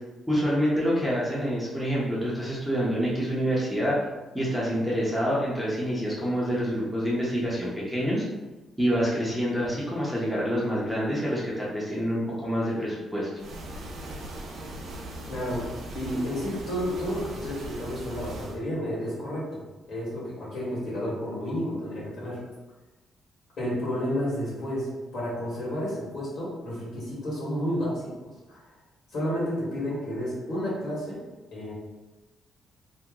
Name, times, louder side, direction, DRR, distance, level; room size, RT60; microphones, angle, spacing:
voice 1, 0.3-4.0 4.3-8.2 8.8-13.3, equal, 5° right, -7 dB, 0.8 m, -27 dB
sound 1, 13.4-18.6, right 1 dB, 75° right, 0.7 m, -39 dB
voice 2, 15.3-15.6 15.9-19.5 19.9-22.4 23.6-28.1 28.5-28.6 29.1-31.2 31.5-31.7, equal, 60° left, -6 dB, 1.5 m, -31 dB
2.9 x 2.1 x 3.6 m, 1.1 s
cardioid pair, 125°, 0 cm